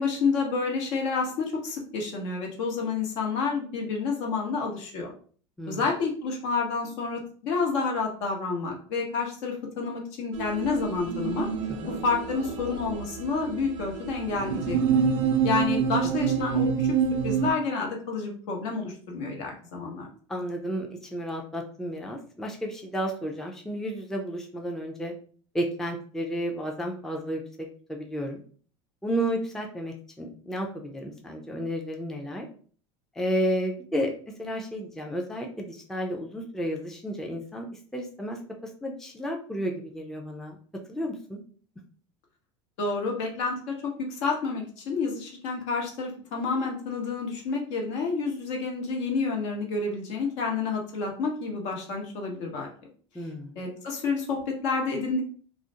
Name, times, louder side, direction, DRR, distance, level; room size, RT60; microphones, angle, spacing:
voice 1, 0.0-5.1 5.7-11.5 11.9-14.8 15.4-16.9 17.2-20.1 42.8-52.7 53.6-55.2, left 4 dB, 65° left, 1 dB, 0.9 m, -29 dB
sound 1, 10.4-17.5, right 6 dB, 85° right, 0.4 m, -27 dB
voice 2, 20.3-25.1 25.5-28.4 29.0-32.5 33.2-37.7 37.9-38.4 38.8-40.6 40.9-41.4 53.1-53.6, equal, 5° left, 2 dB, 0.4 m, -32 dB
2.4 x 2.0 x 2.7 m, 0.44 s
hypercardioid pair, 95°, 16 cm